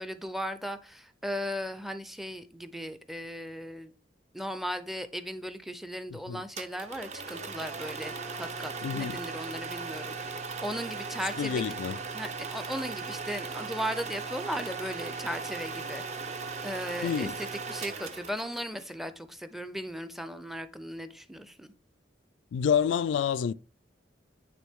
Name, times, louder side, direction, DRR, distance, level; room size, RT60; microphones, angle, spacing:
voice 1, 0.0-3.9 4.3-10.1 10.6-11.7 12.1-16.0 16.6-21.7, equal, ahead, 0.5 m, -37 dB
voice 2, 6.1-6.4 8.8-9.2 11.4-12.0 17.0-17.3 22.5-23.5, left 7 dB, 90° left, 0.3 m, -28 dB
sound 1, 6.6-18.9, right 4 dB, 40° right, 0.6 m, -38 dB
9.3 x 3.4 x 3.5 m
head